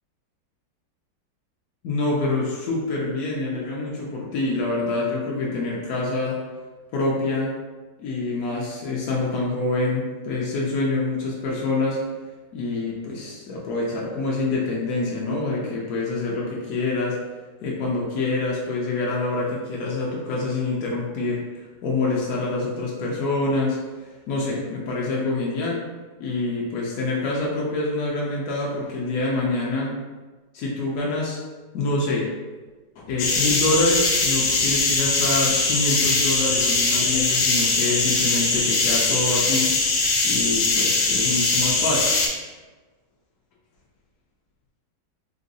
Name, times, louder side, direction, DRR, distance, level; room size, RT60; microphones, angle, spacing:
voice 1, 1.8-6.4 6.9-7.5 8.0-12.0 12.5-17.2 17.6-23.8 24.3-25.8 26.2-29.9 30.5-31.4 31.7-32.3 33.1-39.7 40.2-42.1, left 2 dB, 65° left, -4 dB, 0.9 m, -26 dB
sound 1, 33.2-42.3, left 3 dB, 85° left, 1.3 m, -21 dB
3.8 x 2.6 x 2.6 m, 1.3 s
omnidirectional pair, 1.9 m